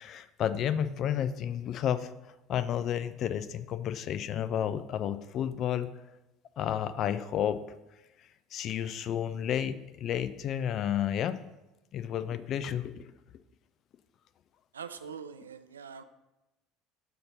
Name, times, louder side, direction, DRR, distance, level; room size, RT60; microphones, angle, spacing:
voice 1, 0.0-2.1 2.5-5.9 6.6-7.8 8.5-11.4 11.9-13.0, left 9 dB, 45° left, 13 dB, 0.3 m, -31 dB
voice 2, 14.7-16.0, right 6 dB, 80° right, 10 dB, 0.3 m, -43 dB
6.4 x 2.8 x 5.4 m, 0.99 s
figure-of-eight pair, 65°, 0 cm